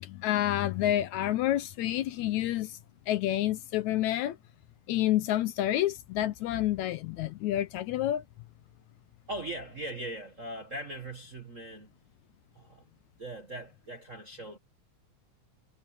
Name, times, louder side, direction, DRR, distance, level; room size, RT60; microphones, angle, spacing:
voice 1, 0.0-2.8 3.1-4.4 4.9-8.2, left 13 dB, 75° left, 1.9 m, -29 dB
voice 2, 9.3-11.9 12.5-12.9 13.2-14.6, right 1 dB, 40° right, 1.2 m, -40 dB
omnidirectional pair, 3.6 m